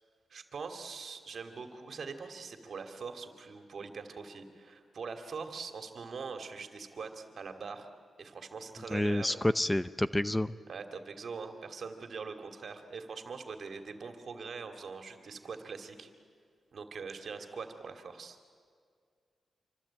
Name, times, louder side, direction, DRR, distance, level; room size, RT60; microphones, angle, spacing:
voice 1, 0.3-7.9 8.2-9.4 10.7-16.1 16.7-18.4, right 5 dB, 65° right, 6 dB, 2.8 m, -43 dB
voice 2, 8.9-10.6, left 1 dB, 15° left, 14 dB, 0.7 m, -29 dB
27.0 x 24.5 x 8.9 m, 2.1 s
cardioid pair, 65°, 0 cm